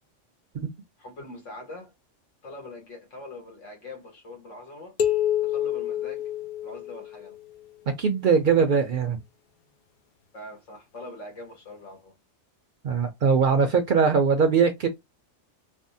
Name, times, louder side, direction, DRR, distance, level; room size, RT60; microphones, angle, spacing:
voice 1, 1.0-1.9 2.4-5.0 5.4-6.3 6.6-7.4 10.3-12.1, left 2 dB, 85° left, 1.5 m, -43 dB
sound 1, 5.0-7.4, left 10 dB, 55° left, 0.6 m, -27 dB
voice 2, 7.9-9.2 12.8-14.9, right 5 dB, 60° right, 0.5 m, -21 dB
3.4 x 2.0 x 2.6 m
omnidirectional pair, 1.2 m